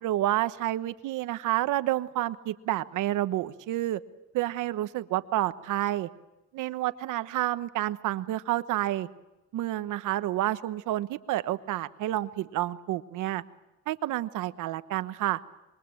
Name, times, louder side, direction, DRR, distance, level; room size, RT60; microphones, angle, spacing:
voice 1, 0.0-4.0 4.3-6.1 6.5-9.1 9.5-13.4 13.9-15.4, right 14 dB, 80° right, 13 dB, 1.1 m, -29 dB
26.5 x 23.0 x 7.8 m, 1.0 s
cardioid pair, 175°, 31 cm